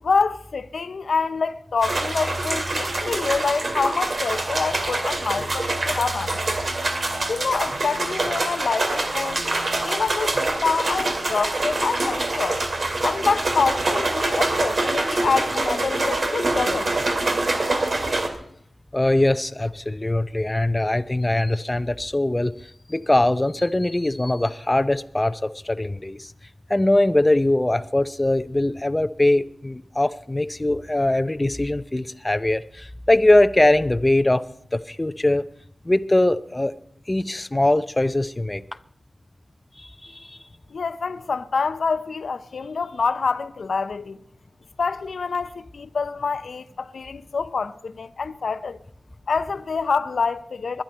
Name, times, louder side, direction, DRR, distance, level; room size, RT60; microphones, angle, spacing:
voice 1, 0.0-6.6 7.3-9.4 9.8-12.6 13.0-16.9 40.7-44.2 44.8-48.8 49.3-50.8, left 4 dB, 90° left, 0.6 m, -26 dB
sound 1, 1.8-18.3, right 2 dB, 65° right, 2.1 m, -25 dB
voice 2, 18.9-22.5 22.9-26.3 26.7-34.4 34.7-35.5 35.9-36.7 37.1-38.6 39.8-40.4, left 1 dB, 20° left, 0.6 m, -21 dB
21.0 x 11.5 x 4.5 m
wide cardioid pair, 80°, 0 cm